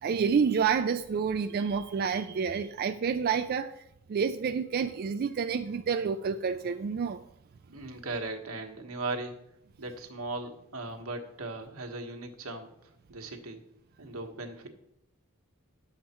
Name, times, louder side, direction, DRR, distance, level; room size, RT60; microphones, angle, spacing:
voice 1, 0.0-3.7 4.1-7.2, right 6 dB, 45° right, 8 dB, 0.3 m, -28 dB
voice 2, 7.7-9.3 9.8-12.7 13.1-13.6 14.0-14.7, right 2 dB, 80° right, 4 dB, 1.4 m, -38 dB
10.5 x 7.3 x 4.4 m, 0.80 s
head